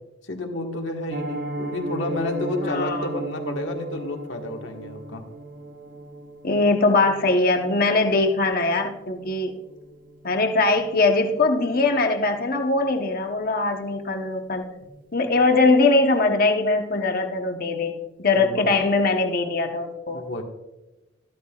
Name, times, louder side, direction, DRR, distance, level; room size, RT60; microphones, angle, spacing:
voice 1, 0.3-5.2 18.3-18.7 20.1-20.4, left 2 dB, 70° left, 2 dB, 1.6 m, -30 dB
Piano, 1.1-12.0 12.3-12.5 12.8-12.9 13.3-13.5 13.9-14.0, right 2 dB, 45° right, 0.9 m, -37 dB
voice 2, 2.6-3.1 6.4-9.5 10.2-14.7 15.1-20.2, left 3 dB, 50° left, 4 dB, 1.0 m, -21 dB
13.5 x 12.5 x 2.4 m, 1.0 s
head